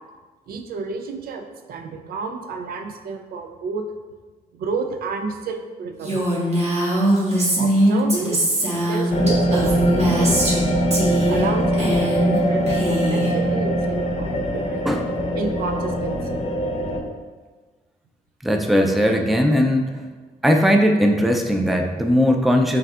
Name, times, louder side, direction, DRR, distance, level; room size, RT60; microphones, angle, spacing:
voice 1, 0.5-3.9 4.5-6.3 7.6-8.5 8.7-10.8 11.3-14.9 15.3-16.5, right 4 dB, 80° right, 6 dB, 0.4 m, -31 dB
Female speech woman speaking, 6.0-10.6 10.9-11.5 11.7-12.4 12.7-13.3, right 1 dB, 45° right, 1.3 m, -21 dB
sound 1, 9.1-17.0, equal, 45° left, 0.6 m, -22 dB
voice 2, 18.4-20.0 20.4-22.8, equal, ahead, 3 dB, 0.3 m, -18 dB
5.5 x 2.7 x 2.4 m, 1.4 s
cardioid pair, 105°, 15 cm